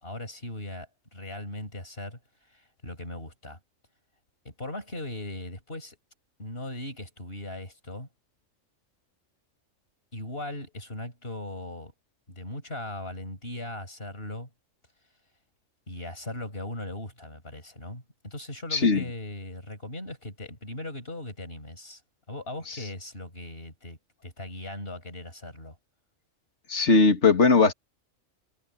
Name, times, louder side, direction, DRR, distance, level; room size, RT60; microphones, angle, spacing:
voice 1, 0.0-2.2 2.5-3.6 4.5-6.0 6.4-8.1 10.1-11.9 12.3-14.5 15.9-22.0 22.3-25.8, left 1 dB, 45° left, 7.1 m, -39 dB
voice 2, 18.7-19.0 22.7-22.8 26.7-27.7, left 4 dB, 65° left, 2.6 m, -19 dB
omnidirectional pair, 1.3 m